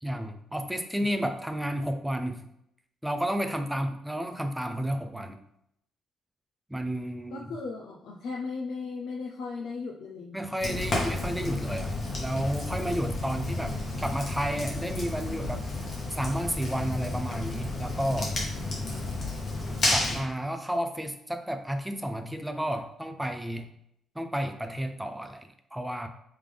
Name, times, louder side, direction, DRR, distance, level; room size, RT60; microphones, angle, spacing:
voice 1, 0.0-2.5 3.0-5.4 6.7-7.5 10.3-15.7 16.1-18.3 19.9-23.7 24.2-26.1, equal, 5° right, 7 dB, 0.3 m, -32 dB
voice 2, 7.3-10.4 18.4-19.1, left 4 dB, 70° left, 0 dB, 0.4 m, -37 dB
Fire, 10.6-20.2, left 2 dB, 35° left, 1.1 m, -31 dB
3.6 x 3.3 x 3.3 m, 0.75 s
cardioid pair, 165°, 0 cm